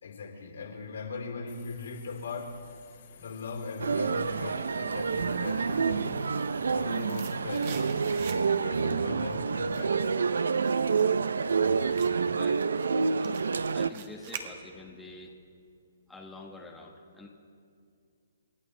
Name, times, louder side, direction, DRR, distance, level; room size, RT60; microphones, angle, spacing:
voice 1, 0.0-2.6 3.1-6.1 6.7-8.0 8.6-10.0, left 4 dB, 75° left, 2 dB, 3.2 m, -39 dB
Subway metro underground, 1.5-10.9, left 6 dB, 50° left, 2.6 m, -56 dB
Male speech man speaking, 3.8-13.9, right 5 dB, 80° right, 0.5 m, -28 dB
sound 1, 6.9-8.8 9.1-15.0 15.3-15.4, right 7 dB, 45° right, 1.3 m, -46 dB
voice 2, 11.6-12.6 13.1-13.5 13.7-15.4 16.1-17.3, left 2 dB, 5° left, -2 dB, 1.2 m, -47 dB
28.0 x 11.5 x 3.3 m, 2.3 s
hypercardioid pair, 150°, 0 cm